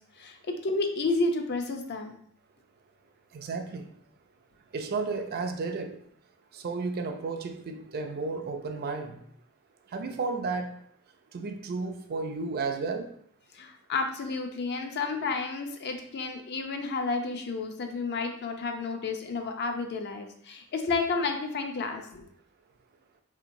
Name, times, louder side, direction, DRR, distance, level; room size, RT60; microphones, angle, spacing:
voice 1, 0.2-2.1 13.6-22.2, left 3 dB, 50° left, 0.5 m, -31 dB
voice 2, 3.3-3.9 4.7-6.0 6.5-9.2 9.9-10.8 11.3-13.1, right 4 dB, 45° right, 0.4 m, -33 dB
3.6 x 2.9 x 2.6 m
head